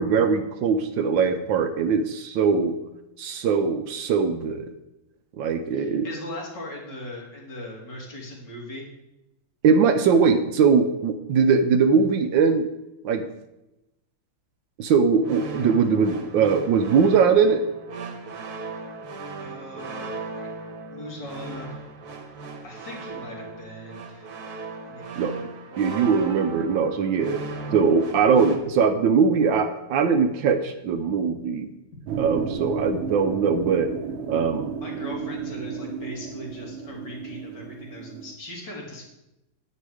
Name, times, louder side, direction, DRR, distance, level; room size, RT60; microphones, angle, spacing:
voice 1, 0.0-2.8 3.2-4.7 5.3-6.1 9.6-12.6 13.0-13.3 14.8-17.7 25.2-25.3 25.8-27.4 27.7-31.7 32.2-33.9 34.3-34.7, right 5 dB, 70° right, 8 dB, 1.3 m, -21 dB
voice 2, 5.7-8.9 19.4-20.5 20.9-21.9 22.6-24.3 24.8-25.3 34.8-39.0, left 1 dB, 55° left, -2 dB, 3.1 m, -39 dB
sound 1, 15.2-28.6, right 3 dB, 55° right, 1.5 m, -37 dB
sound 2, 32.1-38.4, right 6 dB, 90° right, 1.7 m, -33 dB
9.9 x 8.8 x 4.8 m, 0.93 s
omnidirectional pair, 2.3 m